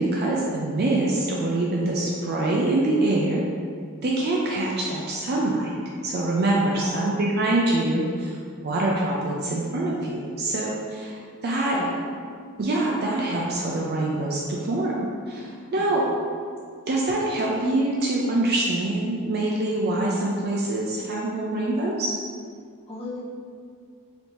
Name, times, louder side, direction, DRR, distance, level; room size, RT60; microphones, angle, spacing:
voice 1, 0.0-3.4 4.0-5.7 6.0-8.4 8.6-11.8 12.6-16.1 16.9-22.1, right 2 dB, 50° right, -3 dB, 0.4 m, -25 dB
voice 2, 6.5-6.9 11.7-11.9 15.7-16.0 22.9-23.2, left 2 dB, 25° left, -7 dB, 0.8 m, -37 dB
5.1 x 2.7 x 3.0 m, 2.1 s
head